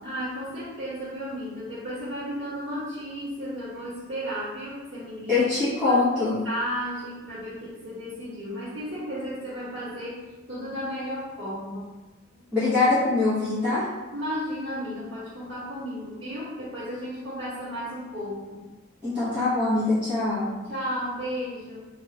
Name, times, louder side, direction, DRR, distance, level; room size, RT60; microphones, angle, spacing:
voice 1, 0.0-5.4 5.8-6.0 6.4-11.9 12.3-12.4 14.1-18.7 20.7-21.9, equal, 65° right, -14 dB, 1.4 m, -34 dB
voice 2, 5.3-6.4 12.5-13.8 19.0-20.5, left 3 dB, 5° right, -16 dB, 1.4 m, -23 dB
3.2 x 2.9 x 3.8 m, 1.2 s
head